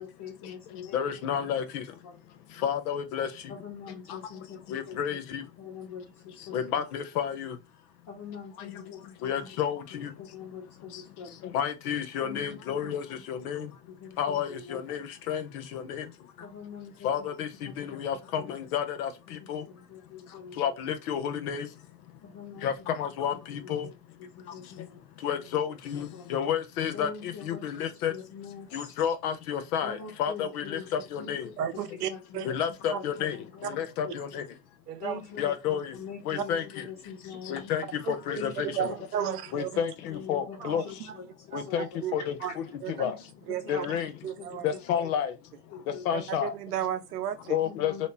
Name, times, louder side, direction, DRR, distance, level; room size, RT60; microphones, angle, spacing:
voice 1, 0.0-1.2 2.0-2.2 3.5-5.2 5.6-6.6 8.1-9.3 10.2-11.4 12.2-12.9 13.9-14.8 16.4-17.1 17.6-18.0 18.3-18.5 19.3-19.5 19.7-20.6 22.2-22.8 23.6-23.9 24.2-25.0 25.9-26.3 26.9-28.9 29.8-31.3 32.1-32.6 32.9-33.0 33.3-34.1 35.0-37.7 38.4-38.7 39.2-39.4 40.0-40.6 40.8-41.8 43.0-43.1 43.6-44.1 44.7-45.1 45.7-46.0 47.6-48.1, left 6 dB, 55° left, 1.4 m, -44 dB
voice 2, 0.9-1.8 2.6-3.3 4.1-4.2 4.7-5.4 6.5-7.6 9.2-10.1 11.4-13.7 14.2-16.1 17.0-19.6 20.6-21.7 22.6-23.9 25.2-28.1 28.7-31.5 32.4-34.4 35.4-35.9 36.3-36.8 37.5-38.9 39.5-40.8 41.5-43.2 43.7-44.1 44.6-45.3 46.0-46.5 47.5-48.1, left 8 dB, 70° left, 0.8 m, -31 dB
voice 3, 31.6-32.5 32.9-33.0 33.6-33.7 34.9-35.2 36.4-36.5 38.0-38.2 38.6-39.8 40.6-40.8 41.1-41.2 41.5-42.5 42.8-43.1 43.5-44.0 44.2-44.7 45.0-45.1 46.1-47.6, right 10 dB, 85° right, 0.6 m, -34 dB
3.2 x 2.8 x 2.8 m
hypercardioid pair, 70°, 46 cm